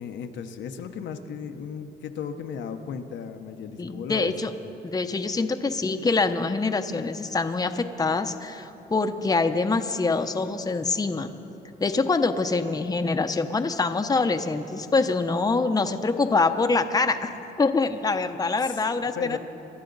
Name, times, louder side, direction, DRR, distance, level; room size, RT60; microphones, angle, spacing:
voice 1, 0.0-4.3 18.6-19.4, left 7 dB, 85° left, 6 dB, 0.8 m, -35 dB
voice 2, 3.8-4.5 4.8-11.3 11.8-17.3 17.6-19.4, left 3 dB, 20° left, 7 dB, 0.7 m, -25 dB
24.0 x 11.5 x 4.0 m, 2.9 s
cardioid pair, 90°, 18 cm